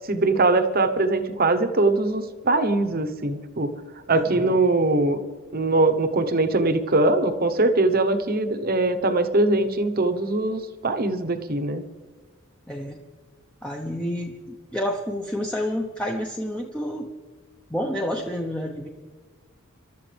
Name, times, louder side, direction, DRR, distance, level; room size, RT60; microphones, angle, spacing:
voice 1, 0.1-3.7 4.1-5.2 5.5-11.8, right 2 dB, 45° right, 8 dB, 1.0 m, -22 dB
voice 2, 4.1-4.6 12.7-13.0 13.6-17.1 17.7-18.9, equal, 5° left, 0 dB, 0.9 m, -29 dB
26.0 x 12.5 x 3.4 m, 1.4 s
head